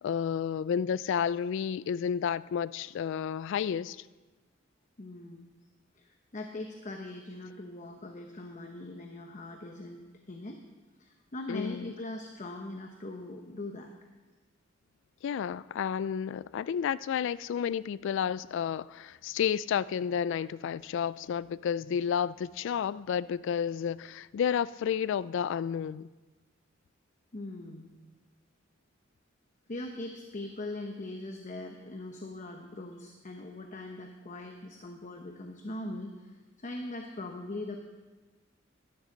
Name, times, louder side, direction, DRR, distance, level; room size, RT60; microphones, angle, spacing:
voice 1, 0.0-4.0 11.5-11.9 15.2-26.1, left 8 dB, 65° left, 0.3 m, -31 dB
voice 2, 5.0-5.5 6.0-10.6 11.0-13.9 27.3-27.9 29.7-37.8, left 2 dB, 40° left, 0.9 m, -41 dB
16.5 x 12.5 x 3.9 m
head